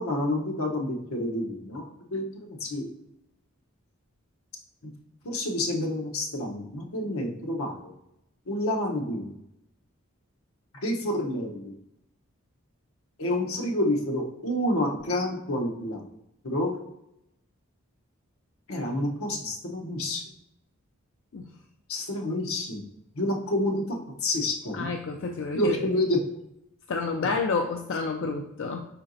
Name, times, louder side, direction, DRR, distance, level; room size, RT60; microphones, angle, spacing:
voice 1, 0.0-2.9 4.8-4.9 5.2-7.9 8.5-9.4 10.8-11.7 13.2-16.1 16.4-16.7 18.7-20.2 21.9-22.8 23.1-24.9 25.5-26.2, left 1 dB, 80° left, 2 dB, 0.8 m, -29 dB
voice 2, 24.7-25.8 26.9-28.8, left 4 dB, 60° left, 2 dB, 0.4 m, -29 dB
4.7 x 4.3 x 2.6 m, 0.82 s
head